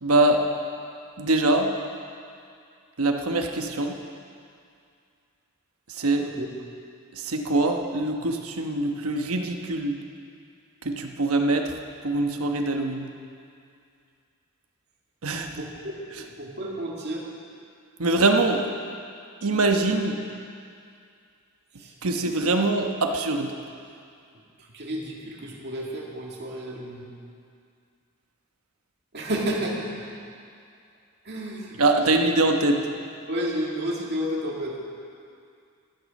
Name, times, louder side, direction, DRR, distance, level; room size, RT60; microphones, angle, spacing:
voice 1, 0.0-0.4 1.2-1.7 3.0-4.0 5.9-6.3 7.1-10.0 10.8-11.8 12.0-13.1 15.2-15.6 18.0-18.6 19.4-20.2 22.0-23.5 31.8-32.9, right 2 dB, 80° right, 4 dB, 1.1 m, -23 dB
voice 2, 15.6-15.9 16.4-17.2 21.8-22.3 24.7-27.1 29.1-30.0 31.2-32.1 33.3-34.8, equal, 50° right, -2 dB, 2.2 m, -31 dB
13.0 x 13.0 x 5.3 m, 2.3 s
head